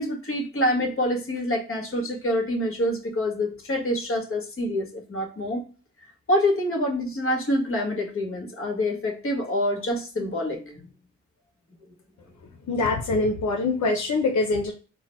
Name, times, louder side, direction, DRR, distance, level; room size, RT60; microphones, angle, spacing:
voice 1, 0.0-5.6 6.3-10.8, left 1 dB, 45° left, 2 dB, 1.5 m, -26 dB
voice 2, 12.7-14.7, left 3 dB, 75° left, 2 dB, 0.7 m, -24 dB
3.8 x 2.1 x 4.4 m, 0.35 s
cardioid pair, 65°, 30 cm